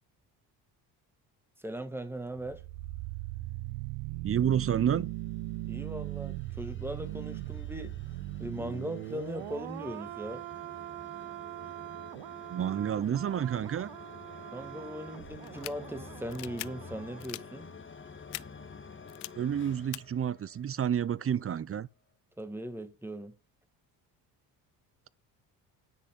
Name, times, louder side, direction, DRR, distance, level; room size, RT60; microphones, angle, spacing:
voice 1, 1.6-2.6 5.7-8.0 8.4-10.4 14.5-17.7 22.4-23.4, right 1 dB, 5° right, 2.0 m, -39 dB
sound 1, 2.4-17.3 17.5-17.7, right 19 dB, 75° right, 0.8 m, -40 dB
voice 2, 4.2-5.1 12.5-13.9 19.3-21.9, right 9 dB, 30° right, 0.6 m, -29 dB
sound 2, 4.9-21.0, left 5 dB, 25° left, 1.7 m, -50 dB
sound 3, 15.4-15.7 16.3-16.7 17.2-17.4 18.3-18.4 19.1-19.3 19.9-20.0, left 24 dB, 85° left, 0.6 m, -40 dB
10.0 x 6.4 x 3.9 m
hypercardioid pair, 65°, 48 cm